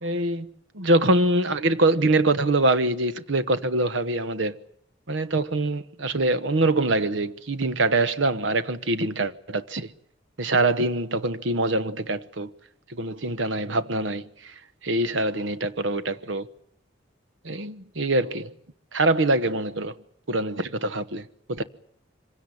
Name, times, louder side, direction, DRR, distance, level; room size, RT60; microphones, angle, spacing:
voice 1, 0.0-4.5 5.1-9.9 10.4-12.5 12.9-14.5 14.8-16.5 17.4-18.5 18.9-19.9 20.3-21.6, right 2 dB, 80° right, 1.2 m, -24 dB
25.0 x 17.0 x 9.8 m
head